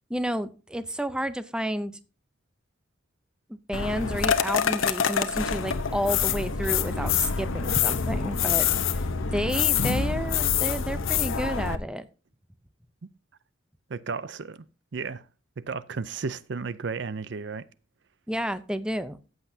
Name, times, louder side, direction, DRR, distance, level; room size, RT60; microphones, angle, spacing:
voice 1, 0.1-1.9 3.5-8.6 9.3-12.1 18.3-19.2, equal, 5° right, 0.5 m, -30 dB
sound 1, 3.7-11.7, left 7 dB, 80° left, 0.9 m, -26 dB
voice 2, 13.9-14.6 14.9-15.2 15.6-17.6, right 4 dB, 60° right, 0.5 m, -33 dB
14.5 x 8.1 x 2.7 m
head